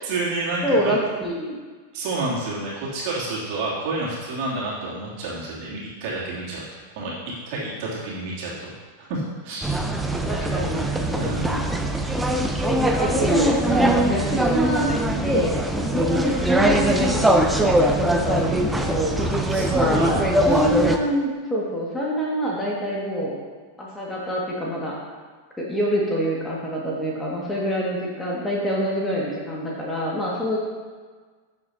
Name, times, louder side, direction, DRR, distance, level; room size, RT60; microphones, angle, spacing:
voice 1, 0.0-0.6 1.9-6.6 7.0-7.1 7.5-8.7 9.0-9.7 11.1-11.6 19.2-20.2 20.4-20.6, right 2 dB, 45° right, -6 dB, 2.9 m, -29 dB
voice 2, 0.6-1.6 10.3-11.7 12.8-19.2 19.7-20.2 20.5-23.4 23.8-25.0 25.6-30.6, equal, 10° left, -4 dB, 1.9 m, -26 dB
sound 1, 9.6-21.0, right 1 dB, 5° right, 0.7 m, -21 dB
13.0 x 7.0 x 2.8 m, 1.5 s
figure-of-eight pair, 90°, 0 cm